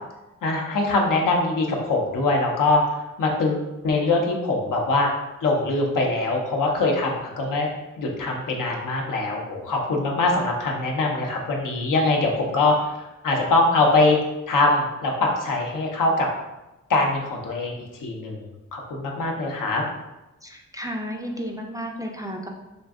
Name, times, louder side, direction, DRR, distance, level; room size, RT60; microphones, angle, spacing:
voice 1, 0.4-5.1 5.4-7.7 8.0-13.0 13.2-14.2 14.5-16.3 16.9-18.4 18.7-19.8, left 2 dB, 70° left, 0 dB, 0.7 m, -23 dB
voice 2, 20.4-22.5, equal, 10° right, 1 dB, 0.4 m, -32 dB
2.5 x 2.2 x 3.4 m, 1.0 s
supercardioid pair, 45°, 33 cm